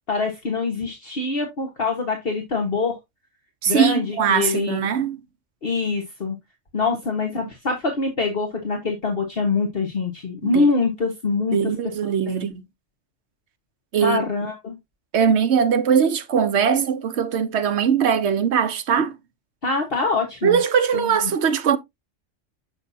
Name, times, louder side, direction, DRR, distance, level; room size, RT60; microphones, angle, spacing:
voice 1, 0.1-3.0 3.7-4.9 5.6-6.4 6.7-11.6 12.3-12.4 14.0-14.8 19.6-20.6 20.9-21.1, left 4 dB, 50° left, 1.5 m, -24 dB
voice 2, 3.6-5.2 10.4-10.7 11.5-12.6 13.9-14.2 15.1-19.2 20.4-21.8, right 7 dB, 65° right, 1.1 m, -21 dB
7.5 x 6.2 x 2.7 m
omnidirectional pair, 1.3 m